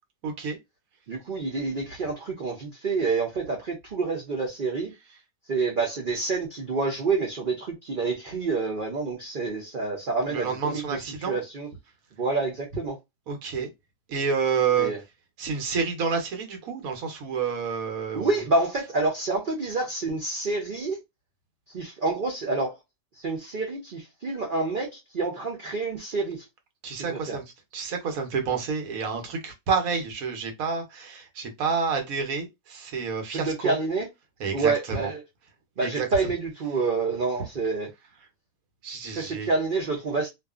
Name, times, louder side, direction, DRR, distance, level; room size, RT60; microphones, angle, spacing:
voice 1, 0.2-0.6 10.3-11.4 13.3-13.7 14.1-14.9 15.4-18.3 26.8-27.4 27.7-33.7 34.4-35.1 35.8-36.3 38.8-39.5, right 5 dB, 65° right, 1.1 m, -29 dB
voice 2, 1.1-4.9 5.5-10.8 11.3-11.7 12.2-13.0 14.8-15.0 18.1-21.0 21.7-22.8 23.2-26.4 27.1-27.4 33.3-34.1 34.5-35.2 35.8-37.9 39.1-40.3, right 3 dB, 90° right, 0.4 m, -28 dB
2.6 x 2.4 x 2.3 m
omnidirectional pair, 1.7 m